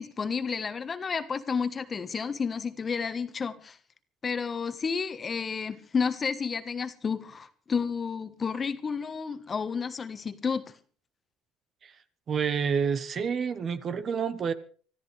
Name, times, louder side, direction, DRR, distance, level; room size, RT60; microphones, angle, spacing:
voice 1, 0.0-3.8 4.2-10.7, left 5 dB, 35° left, 1.4 m, -31 dB
voice 2, 12.3-14.5, right 6 dB, 45° right, 1.2 m, -28 dB
25.0 x 13.5 x 3.4 m
supercardioid pair, 90°, 0 cm